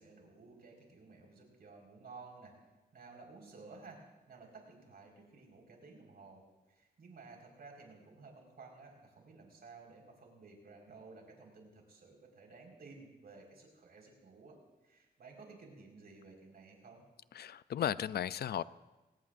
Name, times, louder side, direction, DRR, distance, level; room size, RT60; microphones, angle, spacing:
voice 1, 0.0-2.5 2.9-6.4 6.7-14.6 14.8-17.0, right 4 dB, 65° right, 0 dB, 4.7 m, -55 dB
voice 2, 17.3-18.6, left 10 dB, 70° left, 17 dB, 0.4 m, -35 dB
24.0 x 18.5 x 2.6 m, 1.1 s
wide cardioid pair, 110°, 17 cm